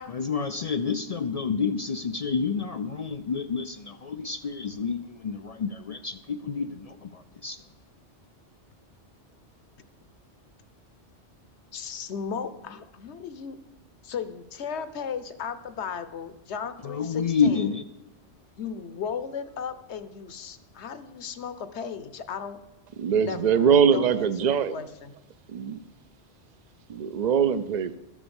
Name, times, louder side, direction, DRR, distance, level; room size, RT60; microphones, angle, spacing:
voice 1, 0.1-7.6 16.8-17.9, left 5 dB, 55° left, 11 dB, 0.4 m, -29 dB
voice 2, 11.7-13.6 14.0-17.6 18.6-22.6 23.2-25.1, left 6 dB, 70° left, 12 dB, 1.1 m, -36 dB
voice 3, 23.0-24.8 25.5-25.8 26.9-28.0, right 7 dB, 45° right, 13 dB, 0.6 m, -22 dB
13.0 x 7.3 x 7.0 m, 1.0 s
omnidirectional pair, 1.2 m